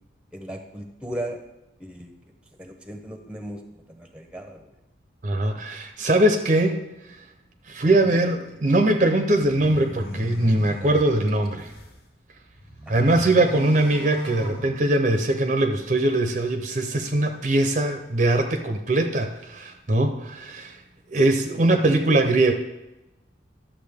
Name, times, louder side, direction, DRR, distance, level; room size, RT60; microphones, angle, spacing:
voice 1, 0.3-1.4 1.8-2.1 2.6-3.6 3.9-4.6 13.0-13.1, right 1 dB, 5° right, 4 dB, 0.9 m, -36 dB
voice 2, 5.2-6.8 7.7-11.7 12.9-20.8 21.1-22.5, right 1 dB, 40° right, 5 dB, 0.7 m, -21 dB
sound 1, 9.3-12.0 12.5-15.3, equal, 60° left, 1.7 m, -36 dB
11.5 x 7.2 x 3.5 m, 0.97 s
head